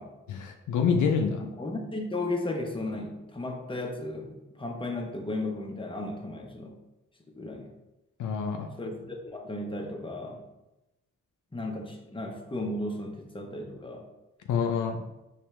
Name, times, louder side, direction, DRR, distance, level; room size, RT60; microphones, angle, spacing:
voice 1, 0.3-1.4 8.2-8.7 14.5-15.0, left 6 dB, 70° left, 4 dB, 0.5 m, -26 dB
voice 2, 1.4-6.7 7.3-7.7 8.8-10.4 11.5-14.0, left 2 dB, 15° left, 1 dB, 1.0 m, -35 dB
4.4 x 3.3 x 3.2 m, 0.97 s
supercardioid pair, 50°, 32 cm